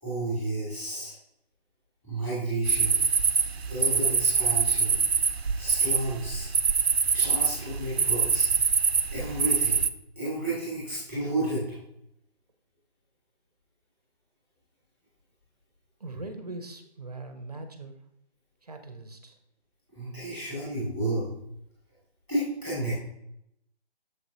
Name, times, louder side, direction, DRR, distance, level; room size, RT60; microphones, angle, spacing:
voice 1, 0.0-1.1 2.0-3.0 3.7-4.9 5.6-6.5 7.1-8.5 9.1-9.8 10.2-11.8 19.9-21.3 22.3-22.9, right 1 dB, 5° left, -10 dB, 2.7 m, -31 dB
sound 1, 2.6-9.9, right 6 dB, 75° right, 0.5 m, -24 dB
voice 2, 16.0-18.0 18.6-19.4, right 2 dB, 35° right, 7 dB, 0.7 m, -41 dB
7.0 x 6.4 x 2.9 m, 0.77 s
figure-of-eight pair, 155°, 32 cm